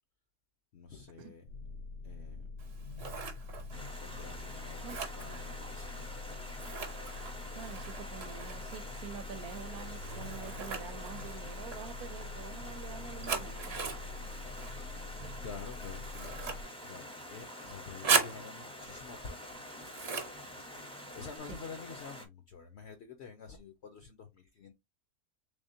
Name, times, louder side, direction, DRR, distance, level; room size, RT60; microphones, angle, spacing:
voice 1, 0.7-1.5 2.0-2.5 4.0-6.2 15.4-19.5 21.1-24.7, left 5 dB, 65° left, 0.7 m, -48 dB
sound 1, 1.5-16.6, left 3 dB, 85° left, 1.5 m, -45 dB
Scissors, 2.6-21.4, right 5 dB, 50° right, 1.0 m, -40 dB
Stream, 3.7-22.3, left 1 dB, 5° left, 0.4 m, -47 dB
voice 2, 7.5-13.8 21.5-21.6, right 8 dB, 75° right, 1.0 m, -47 dB
3.5 x 3.5 x 2.5 m
omnidirectional pair, 1.7 m